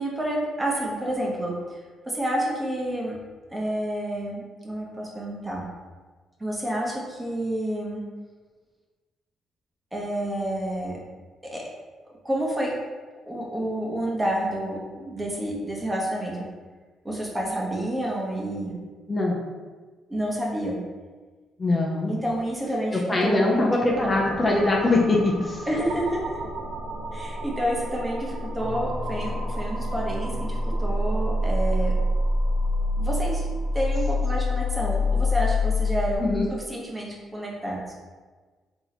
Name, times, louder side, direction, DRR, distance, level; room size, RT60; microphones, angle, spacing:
voice 1, 0.0-1.8 2.1-3.2 3.5-5.6 6.4-8.0 9.9-11.0 11.4-11.6 12.2-12.7 13.2-16.5 17.0-18.7 20.1-20.8 22.1-23.7 25.7-26.4 27.1-31.9 33.0-33.5 33.7-37.9, right 1 dB, 15° right, -2 dB, 1.0 m, -29 dB
voice 2, 21.6-22.1 22.9-25.7 36.2-36.5, left 2 dB, 25° left, -2 dB, 0.7 m, -22 dB
sound 1, 23.9-36.2, left 1 dB, 70° right, 0.6 m, -27 dB
3.8 x 3.0 x 4.1 m, 1.4 s
cardioid pair, 90°, 0 cm